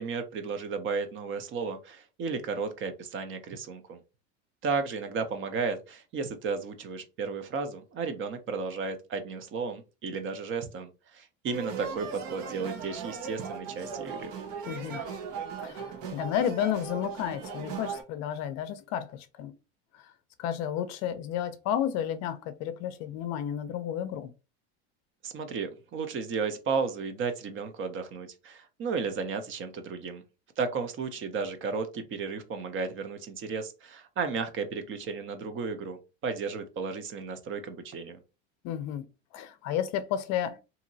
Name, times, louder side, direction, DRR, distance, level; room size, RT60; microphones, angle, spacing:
voice 1, 0.0-4.0 4.6-14.3 25.2-30.2 30.6-38.2, right 5 dB, 35° right, 0.6 m, -34 dB
sound 1, 11.5-18.0, right 6 dB, 75° right, 1.0 m, -38 dB
voice 2, 14.7-15.0 15.6-19.5 20.4-24.3 38.6-39.1 39.3-40.6, left 10 dB, 55° left, 0.5 m, -32 dB
2.9 x 2.7 x 2.6 m
supercardioid pair, 130°, 34 cm